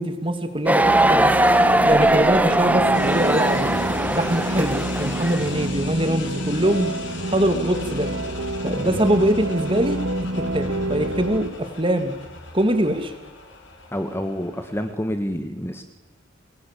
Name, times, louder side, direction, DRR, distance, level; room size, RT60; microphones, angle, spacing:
voice 1, 0.0-1.3 1.9-3.7 4.1-6.9 7.3-8.1 8.6-10.0 10.3-12.1 12.5-13.1, right 1 dB, 25° right, 8 dB, 2.6 m, -23 dB
sound 1, 0.7-5.6, right 1 dB, 5° right, 1.3 m, -20 dB
sound 2, 0.8-11.5, right 1 dB, 80° right, 2.2 m, -28 dB
sound 3, 2.9-14.9, left 4 dB, 60° left, 4.9 m, -40 dB
voice 2, 13.9-15.9, equal, 10° left, 7 dB, 1.5 m, -28 dB
29.5 x 21.0 x 8.5 m, 1.3 s
head